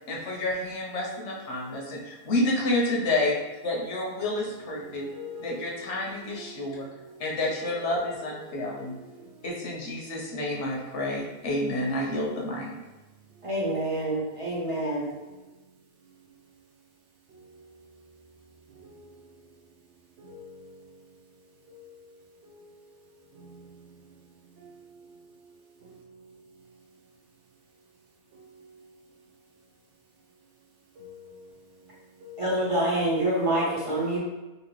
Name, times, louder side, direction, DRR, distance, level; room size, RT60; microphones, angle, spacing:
voice 1, 0.1-3.3 3.6-5.1 5.4-6.8 7.2-8.9 9.4-12.7, left 1 dB, 85° left, 1.1 m, -29 dB
voice 2, 1.0-1.6 4.2-9.6 17.3-17.4 18.7-19.0 20.2-20.7 21.7-22.0 22.4-22.6 23.3-23.6 24.6-25.2 25.8-26.0 28.3-28.7 31.0-31.4 32.2-32.6, left 2 dB, 75° right, 1.0 m, -47 dB
voice 3, 13.4-15.1 32.4-34.2, right 1 dB, 35° right, 0.8 m, -26 dB
2.9 x 2.9 x 3.0 m
omnidirectional pair, 1.2 m